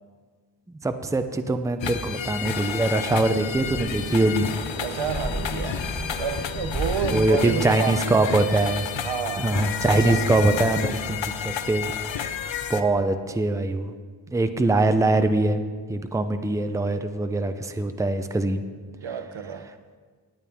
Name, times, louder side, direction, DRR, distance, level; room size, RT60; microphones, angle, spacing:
voice 1, 0.8-4.5 7.1-8.9 9.4-12.3 12.7-13.9 14.3-15.6 15.9-18.6, right 2 dB, 5° right, 8 dB, 0.5 m, -23 dB
sound 1, 1.8-12.8, left 8 dB, 80° left, 0.7 m, -31 dB
sound 2, 3.4-8.3, equal, 25° left, 3.1 m, -34 dB
voice 2, 4.8-5.8 6.2-8.3 9.0-9.5 9.8-10.3 19.0-19.7, right 7 dB, 90° right, 9 dB, 0.9 m, -30 dB
18.0 x 9.1 x 3.5 m, 1.5 s
wide cardioid pair, 135°, 45 cm